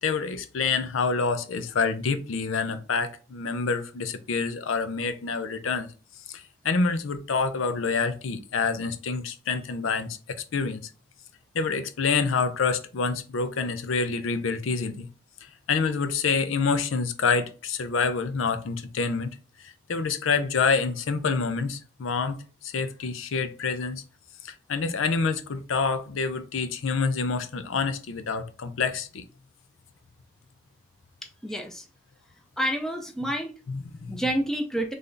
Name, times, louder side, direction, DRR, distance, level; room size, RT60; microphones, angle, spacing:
voice 1, 0.0-5.9 6.3-10.8 11.5-15.1 15.4-24.0 24.4-29.2 33.7-34.2, left 4 dB, 80° left, 0.5 m, -27 dB
voice 2, 31.2-31.9 32.6-33.5 34.1-34.9, right 1 dB, ahead, 0.4 m, -29 dB
3.3 x 2.6 x 3.7 m
head